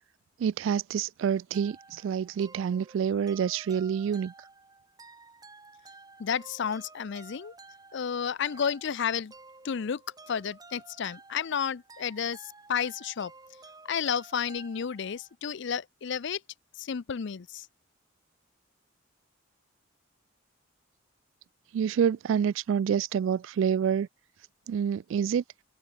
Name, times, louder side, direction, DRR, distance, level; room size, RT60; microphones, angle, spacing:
voice 1, 0.4-4.3 21.7-24.1 24.7-25.4, right 7 dB, 75° right, 0.3 m, -27 dB
sound 1, 1.5-15.4, right 3 dB, 20° right, 2.4 m, -53 dB
voice 2, 6.2-7.5 7.9-9.3 9.6-10.0 10.3-13.3 13.8-16.4 16.8-17.7, left 7 dB, 65° left, 0.5 m, -31 dB
head